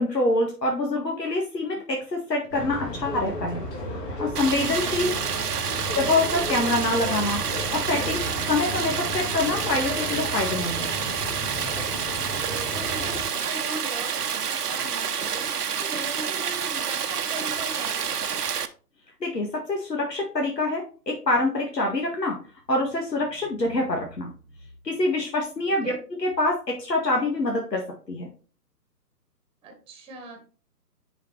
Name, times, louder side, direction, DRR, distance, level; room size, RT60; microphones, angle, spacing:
voice 1, 0.0-3.6 4.2-5.1 5.9-7.4 7.7-8.2 8.5-11.1 19.2-22.4 22.7-24.3 24.8-27.8 28.1-28.3, left 2 dB, 80° left, 1 dB, 2.0 m, -25 dB
sound 1, 2.5-13.3, left 1 dB, 40° left, 4.3 m, -34 dB
Stream, 4.4-18.7, right 7 dB, 70° right, 1.0 m, -29 dB
voice 2, 4.8-5.3 12.4-18.5 25.7-26.0 29.6-30.4, right 2 dB, 10° right, 3 dB, 1.6 m, -40 dB
10.0 x 5.0 x 3.3 m, 0.38 s
figure-of-eight pair, 135°, 49 cm